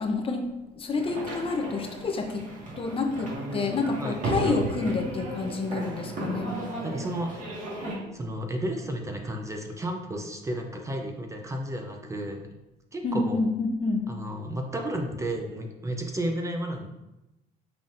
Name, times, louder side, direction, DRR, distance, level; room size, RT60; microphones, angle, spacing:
voice 1, 0.0-2.5 2.8-6.6 13.0-14.1, left 3 dB, 35° left, 4 dB, 0.6 m, -28 dB
sound 1, 0.9-8.0, right 2 dB, 50° right, 1.6 m, -34 dB
voice 2, 6.8-7.4 8.1-12.5 12.9-13.4 14.1-16.9, right 1 dB, 15° right, 3 dB, 0.6 m, -32 dB
5.7 x 3.7 x 2.5 m, 0.96 s
cardioid pair, 110°, 17 cm